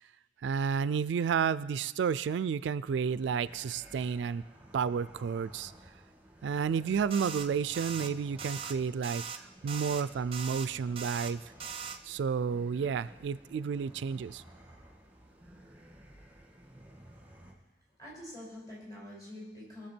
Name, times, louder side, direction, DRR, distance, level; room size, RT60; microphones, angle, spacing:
voice 1, 0.4-4.4 4.7-5.7 6.4-11.4 12.0-14.4, right 6 dB, 70° right, 16 dB, 0.3 m, -31 dB
sound 1, 2.9-17.5, equal, 10° right, 1.5 m, -55 dB
sound 2, 7.1-7.5 7.7-8.1 8.4-8.7 9.0-9.4 9.7-10.0 10.3-10.7 11.0-11.3 11.6-12.0, right 6 dB, 30° right, 0.6 m, -40 dB
voice 2, 18.0-19.9, left 1 dB, 20° left, -7 dB, 5.5 m, -46 dB
21.0 x 7.3 x 4.4 m, 1.1 s
head